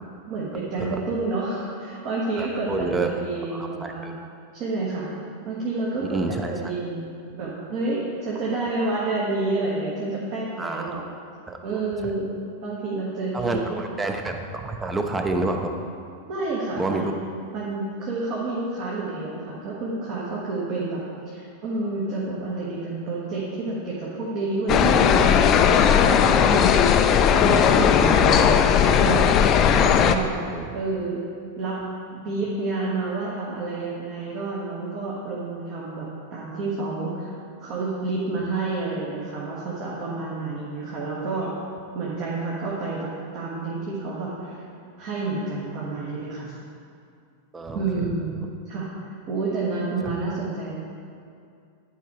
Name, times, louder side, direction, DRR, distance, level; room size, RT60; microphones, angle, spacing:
voice 1, 0.3-4.1 4.5-5.1 5.4-11.0 11.6-13.8 16.2-17.1 17.5-26.9 27.3-30.4 30.7-31.2 31.6-41.6 41.9-44.6 45.0-46.5 47.7-48.3 48.6-48.9 49.3-50.8, right 3 dB, 40° right, -6 dB, 1.5 m, -29 dB
voice 2, 2.4-3.1 3.5-4.1 6.0-6.5 10.6-11.0 11.5-11.6 13.3-15.7 16.8-17.1 30.5-30.7 47.5-48.1 50.0-50.1, right 2 dB, 15° right, 5 dB, 0.7 m, -28 dB
sound 1, 24.7-30.2, left 8 dB, 35° left, 0.4 m, -17 dB
11.0 x 4.7 x 4.7 m, 2.4 s
figure-of-eight pair, 90°, 0 cm